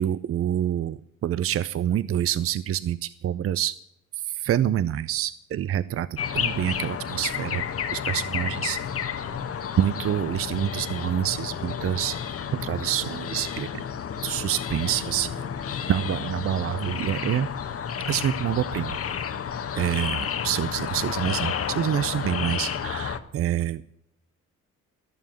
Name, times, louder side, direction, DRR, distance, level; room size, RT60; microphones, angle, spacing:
voice 1, 0.0-3.7 4.3-7.6 7.9-8.8 9.8-12.2 12.5-13.8 14.2-15.5 15.9-17.5 18.1-19.0 19.7-23.8, right 11 dB, 50° right, 17 dB, 0.5 m, -27 dB
sound 1, 6.2-23.2, left 7 dB, 50° left, 1.3 m, -31 dB
14.5 x 7.1 x 9.2 m, 0.76 s
cardioid pair, 90°, 30 cm